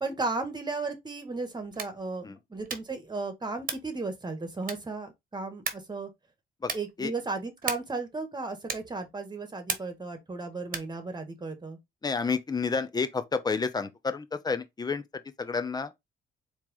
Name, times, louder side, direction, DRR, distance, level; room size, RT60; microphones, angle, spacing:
voice 1, 0.0-2.2 2.5-6.1 6.7-11.8, right 3 dB, 20° right, 1.7 m, -35 dB
sound 1, 1.7-2.1 2.6-3.0 3.6-4.0 4.6-5.0 5.6-6.0 6.6-7.0 7.6-8.0 8.7-9.0 9.7-10.1 10.7-11.0, right 6 dB, 45° right, 1.2 m, -36 dB
voice 2, 6.6-7.1 12.0-15.0 15.4-15.9, left 4 dB, 20° left, 0.7 m, -30 dB
4.3 x 3.2 x 3.8 m
cardioid pair, 90°, 20 cm